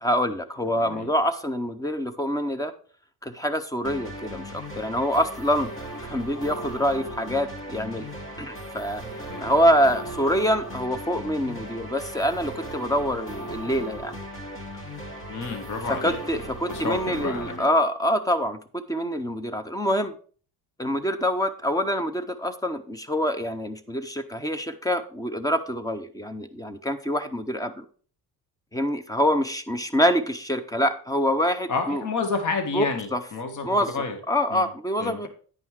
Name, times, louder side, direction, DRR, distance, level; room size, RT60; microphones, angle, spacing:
voice 1, 0.0-2.7 3.2-5.7 6.0-8.1 8.4-9.0 9.4-14.1 15.9-20.1 20.8-27.8 28.7-32.0 32.7-32.9 33.1-33.2 33.6-33.9 34.3-35.3, equal, 10° left, 11 dB, 0.6 m, -25 dB
voice 2, 0.7-1.1 9.3-9.6 15.3-16.2 16.7-17.7 31.7-34.2 34.5-34.7 35.0-35.2, left 4 dB, 50° left, 6 dB, 1.5 m, -30 dB
sound 1, 3.8-17.6, right 1 dB, 35° left, 2.1 m, -37 dB
9.5 x 5.5 x 4.6 m, 0.43 s
cardioid pair, 145°, 38 cm